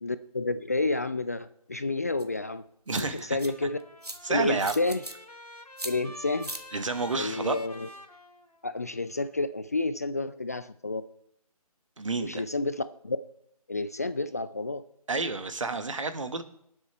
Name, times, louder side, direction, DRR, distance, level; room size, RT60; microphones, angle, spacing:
voice 1, 0.0-2.7 3.0-3.8 4.3-5.0 5.8-6.5 7.2-7.9 8.6-11.0 12.2-13.2 13.7-14.8, left 3 dB, 25° left, 12 dB, 0.4 m, -30 dB
sound 1, 2.2-2.3 2.9-3.5 4.0-4.2 4.6-5.1 5.8-5.9 6.4-6.6, right 1 dB, 80° right, 2.0 m, -38 dB
voice 2, 2.9-3.4 4.2-4.7 6.7-7.6 12.0-12.4 15.1-16.4, right 3 dB, 55° right, 9 dB, 1.5 m, -30 dB
Trumpet, 3.3-9.0, left 1 dB, 85° left, 2.8 m, -48 dB
19.5 x 7.3 x 4.4 m, 0.75 s
figure-of-eight pair, 150°, 20 cm